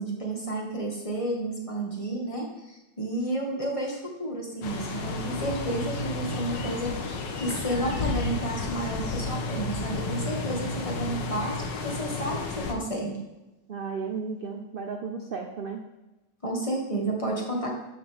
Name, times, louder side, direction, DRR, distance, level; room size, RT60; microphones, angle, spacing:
voice 1, 0.0-13.2 16.4-17.8, right 1 dB, 20° left, -2 dB, 1.9 m, -31 dB
sound 1, 4.6-12.7, left 3 dB, 75° left, 1.7 m, -32 dB
voice 2, 13.7-15.8, right 5 dB, 55° right, 4 dB, 0.6 m, -34 dB
12.5 x 7.9 x 3.5 m, 1.0 s
omnidirectional pair, 2.0 m